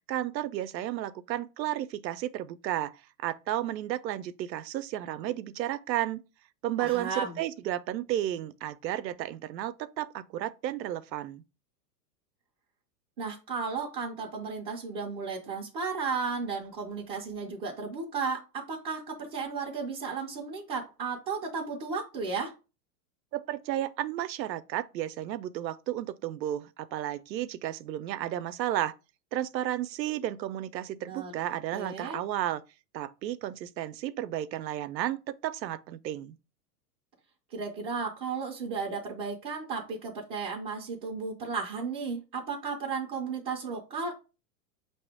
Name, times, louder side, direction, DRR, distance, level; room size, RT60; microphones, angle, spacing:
voice 1, 0.1-2.9 3.2-6.2 6.6-11.4 23.3-28.9 29.3-32.6 32.9-36.4, right 13 dB, 90° right, 0.6 m, -33 dB
voice 2, 6.8-7.4 13.2-22.5 31.1-31.3 31.7-32.2 37.5-44.1, right 4 dB, 20° right, 0.3 m, -34 dB
5.4 x 2.9 x 3.3 m
hypercardioid pair, 135°, 49 cm